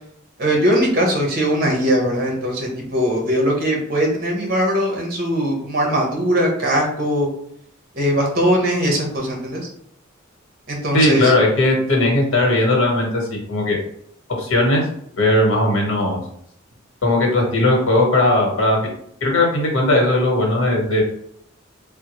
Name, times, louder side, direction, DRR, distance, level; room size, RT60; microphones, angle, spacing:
voice 1, 0.4-7.3 8.0-9.6 10.7-11.3, equal, 50° right, 0 dB, 0.9 m, -20 dB
voice 2, 10.9-13.8 14.4-14.8 15.2-16.2 17.0-18.8 19.2-21.0, left 1 dB, 90° left, -1 dB, 1.0 m, -17 dB
3.5 x 2.1 x 3.0 m, 0.69 s
head